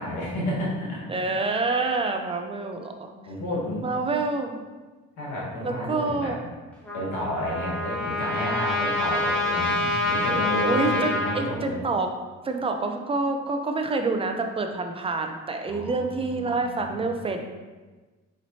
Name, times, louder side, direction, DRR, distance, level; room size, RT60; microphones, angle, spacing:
voice 1, 0.0-1.0 3.2-3.8 5.2-6.3 6.9-11.8 15.6-17.0, left 1 dB, 75° left, -5 dB, 1.4 m, -31 dB
voice 2, 1.1-3.1 3.8-4.5 5.6-6.3 10.7-12.1 12.4-17.4, right 3 dB, 20° right, 4 dB, 0.4 m, -27 dB
Trumpet, 6.9-11.4, left 2 dB, 5° left, 1.1 m, -26 dB
4.0 x 3.1 x 2.7 m, 1.3 s
cardioid pair, 90°, 30 cm